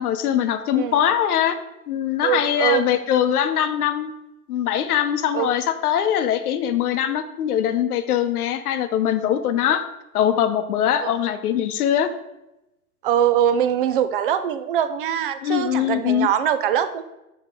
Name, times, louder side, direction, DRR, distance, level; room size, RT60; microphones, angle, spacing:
voice 1, 0.0-1.6 1.9-4.1 4.5-9.8 10.1-12.1 15.4-16.3, left 10 dB, 75° left, 10 dB, 0.9 m, -22 dB
voice 2, 2.2-2.9 5.3-5.5 11.0-11.1 13.0-17.0, right 9 dB, 40° right, 11 dB, 0.4 m, -22 dB
7.0 x 6.4 x 3.6 m, 0.92 s
supercardioid pair, 155°, 45 cm